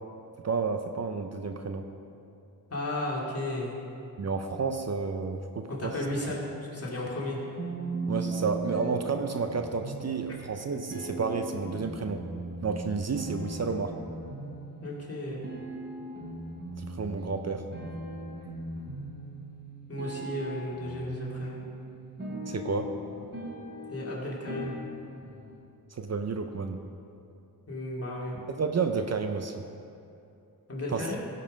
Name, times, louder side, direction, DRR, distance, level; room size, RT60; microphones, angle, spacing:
voice 1, 0.4-1.9 4.2-5.9 8.1-12.3 12.6-13.9 16.8-17.7 22.5-22.9 25.9-26.8 28.5-29.5 30.9-31.1, right 5 dB, 45° right, 6 dB, 0.6 m, -31 dB
voice 2, 2.7-3.7 5.7-6.5 6.7-7.4 14.8-15.5 19.9-21.6 23.9-24.7 27.7-28.4 30.7-31.2, left 1 dB, 40° left, -5 dB, 2.6 m, -34 dB
sound 1, 7.6-25.6, right 2 dB, 30° right, 2.9 m, -39 dB
16.0 x 5.5 x 5.1 m, 2.7 s
wide cardioid pair, 95°, 36 cm